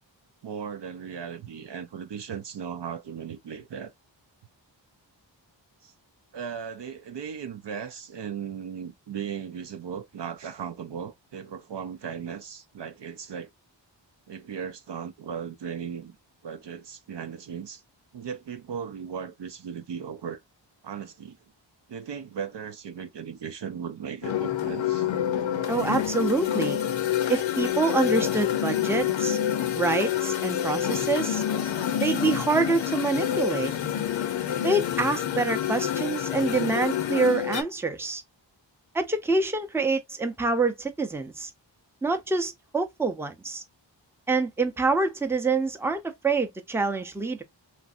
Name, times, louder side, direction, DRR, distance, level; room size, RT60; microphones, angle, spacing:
voice 1, 0.4-3.9 5.8-5.9 6.3-13.5 14.3-16.2 16.4-17.8 18.1-20.4 20.8-21.4 21.9-25.1, right 7 dB, 65° right, 0.5 m, -37 dB
sound 1, 24.2-37.6, left 10 dB, 80° left, 0.6 m, -27 dB
voice 2, 25.7-26.8 27.3-29.4 29.8-31.4 32.0-33.7 34.6-38.2 38.9-41.5 42.0-43.6 44.3-47.4, right 3 dB, 5° right, 0.5 m, -26 dB
3.1 x 2.5 x 2.4 m
wide cardioid pair, 70°, 46 cm